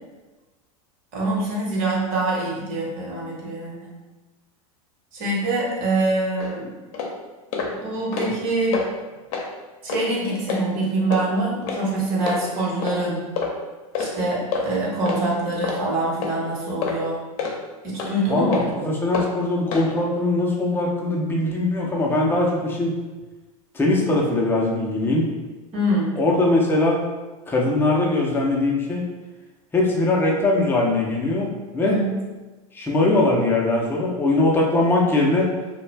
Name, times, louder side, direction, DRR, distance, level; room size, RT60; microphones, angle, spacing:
voice 1, 1.1-3.9 5.1-6.7 7.8-8.8 9.8-13.2 14.0-17.2 17.8-18.7 25.7-26.1 31.8-32.1, right 2 dB, 50° right, -4 dB, 1.0 m, -24 dB
sound 1, 6.4-6.5 6.9-7.1 7.5-7.7 8.0-8.4 8.7-8.9 9.3-9.5 9.9-10.0 10.5-10.6 11.1-11.2 11.7-11.8 12.3-12.4 12.8-13.0 13.4-13.5 13.9-14.1 14.5-14.6 15.0-15.2 15.6-15.8 16.2-16.4 16.8-17.0 17.4-17.5 18.0-18.1 18.5-18.7 19.1-19.3 19.7-19.9, left 5 dB, 60° left, 0.6 m, -27 dB
voice 2, 18.3-22.9 23.7-25.3 26.2-27.0 27.5-29.0 29.7-31.5 31.7-32.0 32.7-35.5, left 2 dB, 10° left, -2 dB, 0.5 m, -21 dB
2.3 x 2.2 x 3.2 m, 1.2 s
hypercardioid pair, 105°, 19 cm